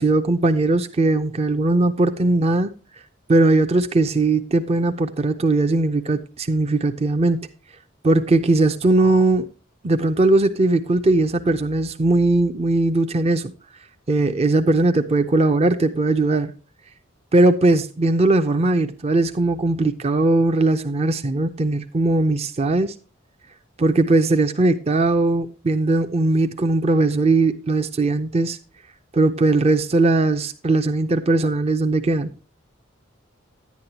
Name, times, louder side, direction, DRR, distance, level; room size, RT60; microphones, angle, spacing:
voice 1, 0.0-2.7 3.3-7.5 8.0-9.5 9.8-13.5 14.1-16.5 17.3-22.9 23.8-28.6 29.1-32.3, right 2 dB, 30° right, 0.5 m, -19 dB
10.5 x 9.4 x 2.8 m
head